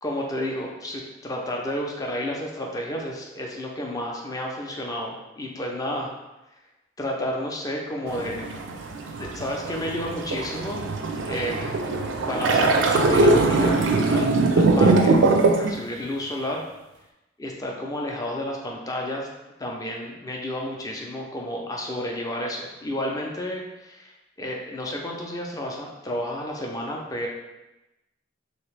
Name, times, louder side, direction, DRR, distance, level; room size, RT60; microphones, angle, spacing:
voice 1, 0.0-6.1 7.0-8.5 9.2-10.9 11.3-11.8 12.2-15.2 15.6-16.6 17.4-19.3 19.6-27.3, left 1 dB, 20° left, 0 dB, 0.5 m, -31 dB
sound 1, 8.1-15.7, right 3 dB, 75° right, 0.4 m, -21 dB
3.1 x 2.9 x 3.3 m, 0.99 s
head